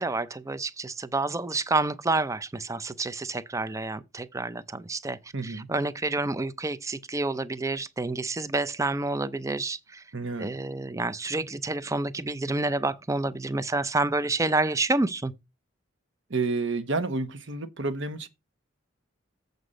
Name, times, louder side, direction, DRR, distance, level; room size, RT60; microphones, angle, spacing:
voice 1, 0.0-10.0 10.4-15.3, right 2 dB, 15° right, 0.5 m, -29 dB
voice 2, 5.3-5.7 10.1-10.5 16.3-18.3, right 3 dB, 65° right, 1.1 m, -30 dB
8.1 x 5.5 x 5.0 m
head